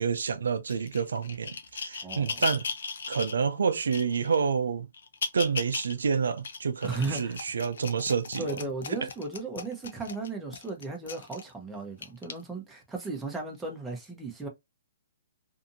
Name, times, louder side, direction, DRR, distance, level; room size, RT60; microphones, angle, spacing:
voice 1, 0.0-2.7 3.1-4.9 5.3-8.6 8.9-9.1, right 6 dB, 90° right, 0.5 m, -28 dB
sound 1, 0.7-3.4 3.9-4.4 4.9-5.9 6.4-11.5 12.0-12.3 13.1-13.2, left 5 dB, 75° left, 0.6 m, -37 dB
voice 2, 2.0-2.4 6.8-7.4 8.4-14.5, right 3 dB, 5° right, 0.8 m, -36 dB
2.7 x 2.5 x 2.6 m
hypercardioid pair, 155°, 0 cm